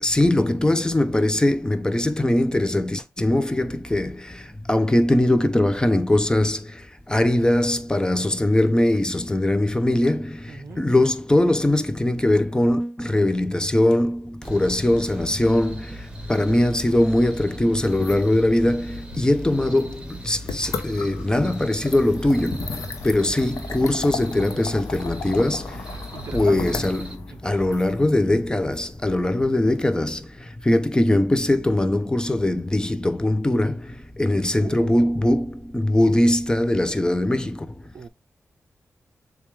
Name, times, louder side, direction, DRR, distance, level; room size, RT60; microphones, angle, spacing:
voice 1, 0.0-25.9 26.3-37.7, left 1 dB, 15° left, 0.6 m, -21 dB
voice 2, 10.5-10.9 25.9-26.9 27.3-28.0 34.2-35.3 37.9-38.1, right 5 dB, 60° right, 0.5 m, -40 dB
sound 1, 14.4-27.2, right 1 dB, 15° right, 1.2 m, -39 dB
sound 2, 17.8-29.7, left 4 dB, 80° left, 0.8 m, -35 dB
6.9 x 2.4 x 3.2 m
cardioid pair, 65°, 5 cm